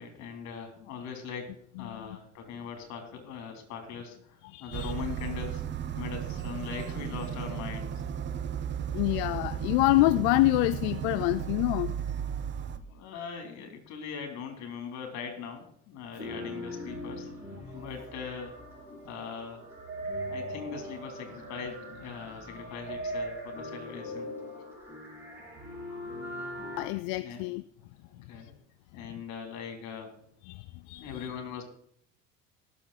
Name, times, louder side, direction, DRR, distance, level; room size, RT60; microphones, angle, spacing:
voice 1, 0.0-5.6 5.9-7.9 12.8-18.5 19.0-19.7 20.3-24.3 27.2-27.4 28.0-28.5 28.9-30.2 31.0-31.6, left 6 dB, 65° left, 5 dB, 3.2 m, -41 dB
voice 2, 4.4-4.9 8.9-11.9 26.8-27.6 30.5-31.3, left 20 dB, 90° left, 14 dB, 0.5 m, -27 dB
sound 1, 4.7-12.8, right 9 dB, 40° right, 0.7 m, -34 dB
sound 2, 16.2-26.9, equal, 10° right, 4.4 m, -40 dB
17.5 x 6.9 x 4.0 m, 0.64 s
cardioid pair, 115°, 29 cm